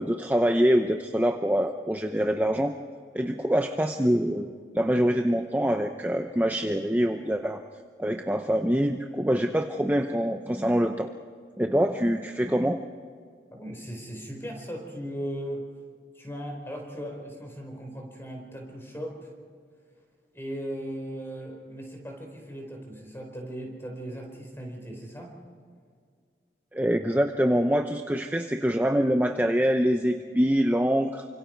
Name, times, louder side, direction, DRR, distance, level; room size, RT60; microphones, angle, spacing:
voice 1, 0.0-2.7 3.1-4.5 4.7-7.6 8.0-11.1 11.6-12.8 26.7-31.3, equal, 10° right, 5 dB, 0.7 m, -24 dB
voice 2, 13.5-15.7 16.1-19.3 20.3-25.4, equal, 15° left, 2 dB, 4.7 m, -38 dB
29.0 x 26.0 x 4.6 m, 2.1 s
head